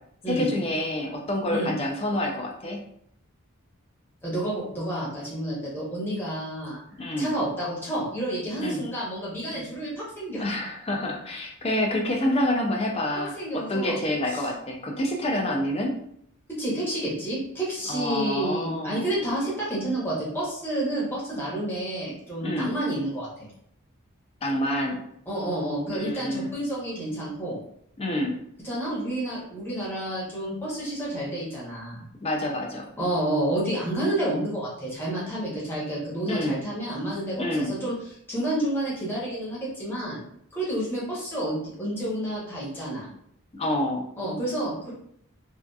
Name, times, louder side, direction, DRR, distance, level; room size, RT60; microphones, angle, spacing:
voice 1, 0.3-2.8 7.0-7.3 8.6-8.8 9.5-9.6 10.4-15.9 17.9-19.1 22.4-22.7 24.4-25.0 25.9-26.6 28.0-28.3 32.2-32.9 36.2-36.6 37.4-37.7 43.5-44.0, left 1 dB, 25° left, 0 dB, 0.4 m, -27 dB
voice 2, 4.2-6.8 7.2-10.4 13.4-14.0 16.6-23.3 25.3-27.6 28.6-32.0 33.0-37.9 38.3-40.2 40.5-43.1 44.2-44.9, right 1 dB, 10° left, -7 dB, 0.8 m, -29 dB
2.6 x 2.3 x 2.2 m, 0.69 s
head